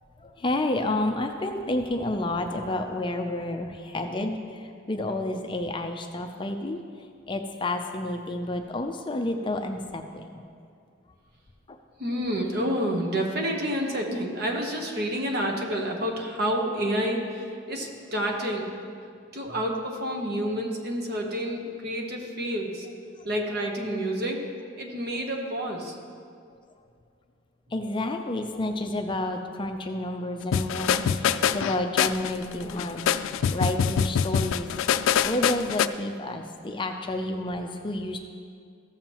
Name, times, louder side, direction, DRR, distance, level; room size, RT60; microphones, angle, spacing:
voice 1, 0.2-6.8 7.3-10.4 11.7-11.8 27.7-33.0 33.5-34.7 35.2-38.2, left 1 dB, 25° left, 5 dB, 0.4 m, -30 dB
voice 2, 12.0-18.8 19.3-22.9 23.2-24.4 24.8-25.9, equal, 50° right, 1 dB, 1.1 m, -29 dB
sound 1, 30.5-35.9, left 8 dB, 90° left, 0.3 m, -25 dB
14.5 x 7.2 x 3.0 m, 2.3 s
head